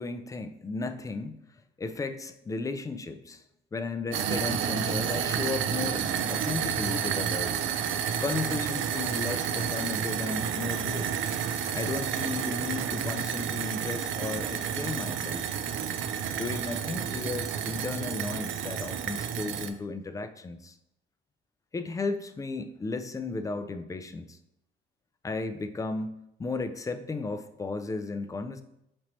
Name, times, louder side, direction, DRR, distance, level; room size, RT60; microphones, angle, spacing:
voice 1, 0.0-1.4 1.8-3.4 3.7-7.6 8.2-11.1 11.7-15.5 16.4-20.8 21.7-24.4 25.2-28.6, left 3 dB, 15° left, 9 dB, 0.3 m, -34 dB
sound 1, 4.1-19.7, right 8 dB, 75° right, 0.4 m, -30 dB
5.1 x 2.9 x 3.0 m, 0.82 s
cardioid pair, 90°, 20 cm